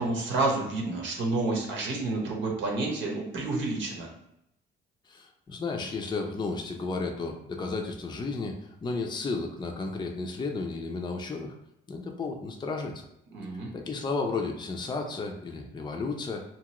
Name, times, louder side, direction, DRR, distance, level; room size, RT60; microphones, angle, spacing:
voice 1, 0.0-4.1 13.3-13.7, right 2 dB, 75° right, 0 dB, 1.0 m, -29 dB
voice 2, 5.1-11.5 11.9-13.0 13.7-16.4, left 3 dB, 20° left, 2 dB, 0.5 m, -33 dB
2.8 x 2.4 x 2.9 m, 0.79 s
cardioid pair, 90°, 20 cm